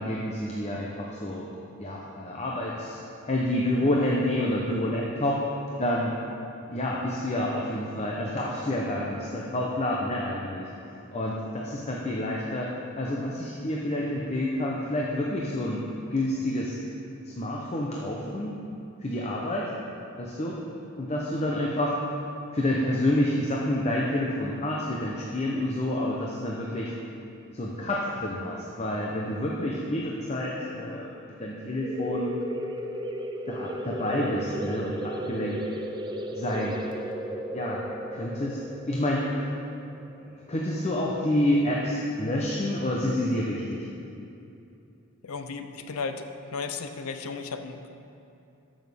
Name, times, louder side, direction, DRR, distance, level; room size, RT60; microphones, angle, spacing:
voice 1, 0.0-1.5 1.8-5.4 5.8-6.2 6.7-10.6 11.1-12.7 13.0-15.8 16.1-16.8 17.2-18.6 19.0-19.7 20.2-20.6 21.0-22.0 22.5-26.9 27.5-32.3 33.5-35.6 36.3-36.8 37.5-37.8 38.1-38.6 38.9-39.5 40.5-43.8, left 1 dB, 30° left, -3 dB, 0.7 m, -28 dB
sound 1, 31.8-41.1, right 1 dB, 20° right, 0.4 m, -35 dB
voice 2, 45.2-46.2 46.5-47.9, left 4 dB, 75° left, 8 dB, 0.5 m, -34 dB
13.0 x 6.3 x 3.5 m, 2.7 s
head